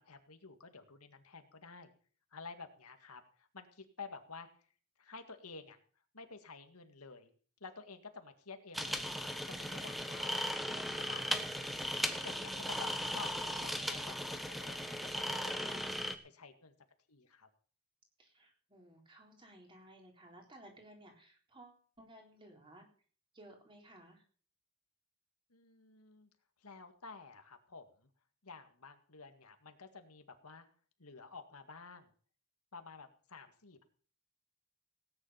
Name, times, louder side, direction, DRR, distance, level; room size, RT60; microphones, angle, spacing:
voice 1, 0.0-1.9 2.3-4.5 5.0-5.8 6.1-7.3 7.6-9.0 9.5-11.8 12.2-14.8 15.1-16.7 17.1-17.5 25.5-26.3 26.6-28.1 28.4-30.7 31.0-32.1 32.7-33.8, left 4 dB, 85° left, 7 dB, 2.0 m, -51 dB
sound 1, 8.7-16.1, equal, ahead, 1.1 m, -37 dB
voice 2, 13.2-13.9 18.2-22.9 23.3-24.2, right 1 dB, 20° right, 1 dB, 3.9 m, -58 dB
17.5 x 9.9 x 5.8 m, 0.43 s
head